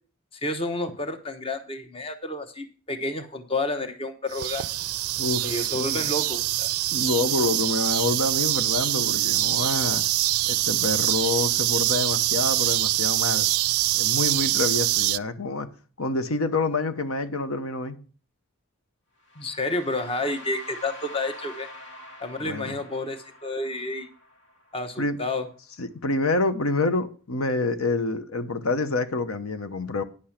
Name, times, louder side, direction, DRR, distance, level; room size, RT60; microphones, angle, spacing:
voice 1, 0.3-4.6 5.4-6.7 19.4-21.7 22.2-24.1 24.7-25.5, left 2 dB, 25° left, 1.0 m, -30 dB
sound 1, 4.3-15.2, right 17 dB, 85° right, 0.4 m, -24 dB
voice 2, 5.2-6.1 6.9-10.0 10.5-13.5 13.9-15.7 16.0-18.0 22.4-22.8 25.0-25.2 25.8-30.0, left 3 dB, 75° left, 0.9 m, -27 dB
sound 2, 19.2-25.2, left 1 dB, 55° left, 1.9 m, -45 dB
10.0 x 6.8 x 5.8 m
head